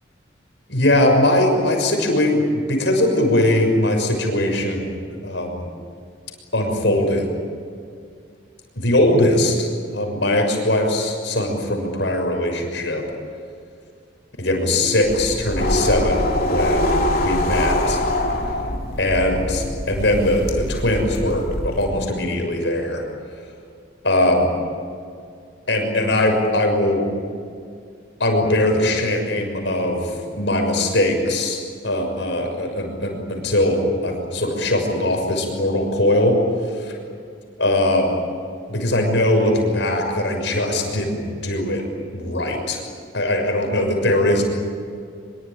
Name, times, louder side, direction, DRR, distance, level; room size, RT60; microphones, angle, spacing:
voice 1, 0.7-5.7 6.5-7.3 8.8-13.0 14.4-18.0 19.0-23.0 24.0-24.5 25.7-27.0 28.2-36.4 36.7-36.9 37.6-38.1 38.7-41.8 42.1-42.8 43.1-44.4, left 1 dB, 65° left, 3 dB, 6.5 m, -20 dB
sound 1, 15.0-21.9, left 1 dB, 50° left, 3.4 m, -23 dB
25.0 x 23.0 x 9.4 m, 2.2 s
head